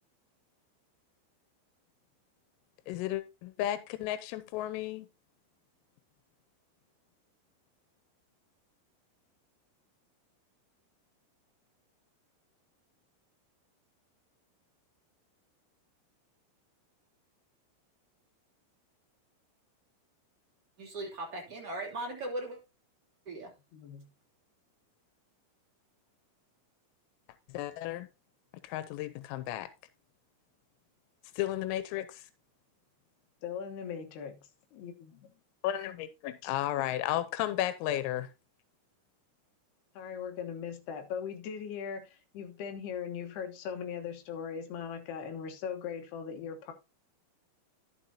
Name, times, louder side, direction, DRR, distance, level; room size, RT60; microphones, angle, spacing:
voice 1, 2.9-5.1 27.5-28.1 28.6-29.7 31.4-32.3 35.6-38.3, left 13 dB, 90° left, 3.4 m, -33 dB
voice 2, 20.8-22.6 23.2-23.5, right 2 dB, 25° right, 2.5 m, -38 dB
voice 3, 23.7-24.1 33.4-34.4 34.7-35.3 39.9-46.7, left 7 dB, 70° left, 2.8 m, -39 dB
12.0 x 7.3 x 2.7 m
omnidirectional pair, 5.8 m